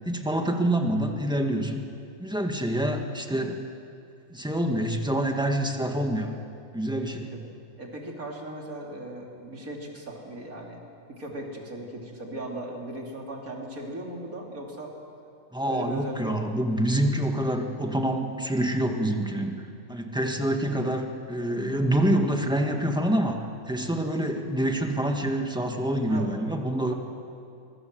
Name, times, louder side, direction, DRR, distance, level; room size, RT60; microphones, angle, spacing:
voice 1, 0.1-1.9 2.2-3.7 4.3-6.4 6.7-7.3 15.5-19.6 19.9-26.9, right 1 dB, 5° right, 3 dB, 1.7 m, -26 dB
voice 2, 7.8-10.8 11.1-14.9 15.7-16.6 23.8-24.0 26.1-26.3, right 1 dB, 75° right, 0 dB, 3.7 m, -38 dB
24.0 x 22.5 x 7.7 m, 2.6 s
omnidirectional pair, 1.5 m